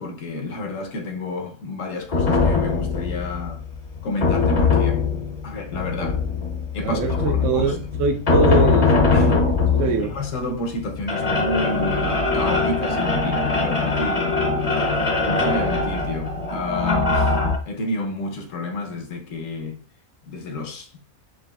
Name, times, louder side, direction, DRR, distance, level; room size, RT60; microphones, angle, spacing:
voice 1, 0.0-3.6 4.0-5.1 5.4-6.2 6.7-7.8 9.1-9.4 10.1-17.4 17.7-19.8 20.3-20.9, left 2 dB, 65° left, 1.2 m, -30 dB
sound 1, 2.1-17.6, left 4 dB, 35° left, 0.7 m, -22 dB
voice 2, 6.8-9.4 9.8-10.1, right 5 dB, 65° right, 0.9 m, -23 dB
5.0 x 3.3 x 2.3 m
omnidirectional pair, 1.5 m